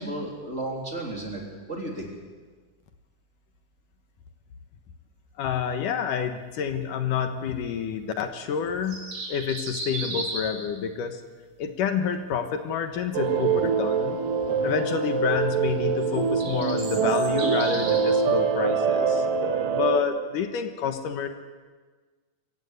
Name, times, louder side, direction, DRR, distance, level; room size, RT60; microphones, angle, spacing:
voice 1, 0.0-1.4 1.7-2.1 14.4-14.7, right 1 dB, 20° right, -1 dB, 3.6 m, -33 dB
voice 2, 5.4-9.0 9.3-11.2 11.6-14.2 14.6-19.3 19.7-21.3, left 7 dB, 75° left, 7 dB, 2.8 m, -28 dB
sound 1, 8.7-10.7 16.0-18.1, right 2 dB, 55° right, 5.2 m, -35 dB
sound 2, 13.1-20.0, right 6 dB, 85° right, 3.1 m, -24 dB
24.5 x 15.5 x 8.3 m, 1.4 s
omnidirectional pair, 3.8 m